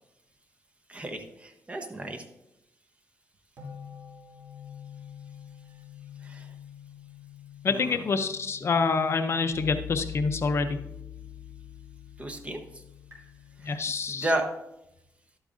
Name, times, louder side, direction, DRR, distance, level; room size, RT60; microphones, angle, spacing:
voice 1, 0.9-2.2 6.2-6.5 7.7-8.0 12.2-12.8 13.6-13.8 14.1-14.5, right 1 dB, 20° right, 5 dB, 0.9 m, -33 dB
sound 1, 3.6-14.1, left 8 dB, 55° right, 3.0 m, -44 dB
voice 2, 7.6-10.8 13.6-14.3, left 4 dB, 45° left, 8 dB, 0.5 m, -27 dB
11.5 x 8.6 x 2.6 m, 0.86 s
wide cardioid pair, 130°, 6 cm